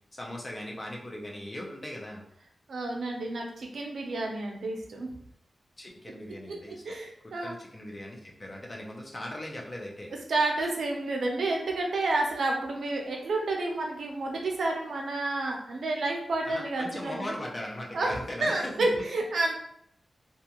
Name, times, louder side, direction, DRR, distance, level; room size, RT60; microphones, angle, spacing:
voice 1, 0.1-2.2 5.8-6.9 7.2-10.1 16.4-18.9, left 1 dB, 30° left, -1 dB, 0.6 m, -39 dB
voice 2, 2.7-5.1 6.4-7.6 10.3-17.3 17.9-19.6, right 2 dB, 85° right, 1 dB, 0.5 m, -30 dB
2.4 x 2.3 x 2.8 m, 0.72 s
wide cardioid pair, 95°, 0 cm